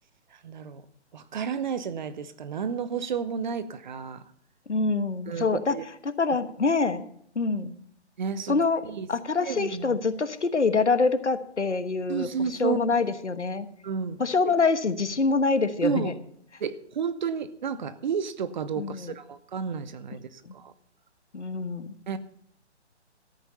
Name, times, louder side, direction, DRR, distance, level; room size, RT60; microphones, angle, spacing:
voice 1, 0.3-0.8 1.1-4.2 5.3-5.8 8.2-9.1 9.4-10.0 12.1-13.0 13.8-14.2 14.4-14.5 15.8-16.2 16.6-20.7 22.1-22.2, right 6 dB, 40° right, 13 dB, 0.9 m, -31 dB
voice 2, 4.7-5.8 6.2-7.1 7.3-7.7 8.5-8.8 9.1-12.3 12.6-13.7 14.2-16.1 18.8-19.1 20.4-20.5 21.3-21.9, left 4 dB, 80° left, 11 dB, 1.3 m, -25 dB
13.5 x 8.9 x 5.6 m, 0.66 s
figure-of-eight pair, 135°, 35 cm